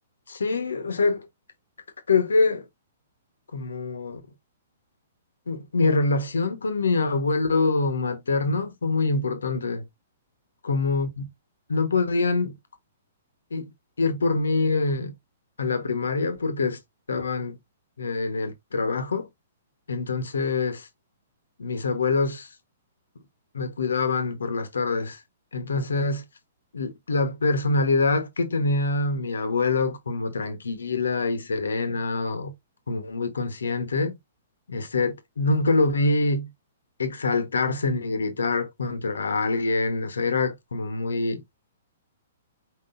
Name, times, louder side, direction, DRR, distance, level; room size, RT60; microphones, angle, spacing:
voice 1, 0.3-1.3 2.1-2.7 3.5-4.2 5.5-9.8 10.6-11.3 11.7-12.5 13.5-13.7 14.0-15.1 15.6-16.8 17.1-17.6 18.0-19.3 19.9-20.9 21.6-22.5 23.5-25.2 25.5-26.2 26.7-32.5 32.9-34.2 34.7-36.5 37.0-41.4, left 3 dB, 80° left, 1.2 m, -25 dB
5.0 x 3.9 x 2.6 m
hypercardioid pair, 120°, 0 cm